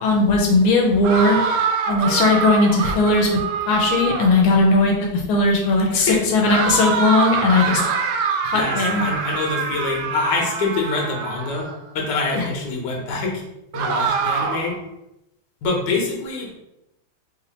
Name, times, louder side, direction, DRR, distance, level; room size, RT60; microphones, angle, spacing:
voice 1, 0.0-1.4 1.9-3.3 3.7-7.8 8.4-9.0 12.3-12.5, left 2 dB, 85° left, 0 dB, 1.5 m, -18 dB
man screaming, 1.0-4.4 6.5-11.7 13.7-14.8, right 5 dB, 80° right, 1.3 m, -24 dB
voice 2, 5.9-6.2 7.6-7.7 8.5-11.7 11.9-13.4 13.7-14.7 15.6-16.5, left 3 dB, 60° left, -1 dB, 1.5 m, -25 dB
3.6 x 2.7 x 4.0 m, 0.84 s
omnidirectional pair, 2.3 m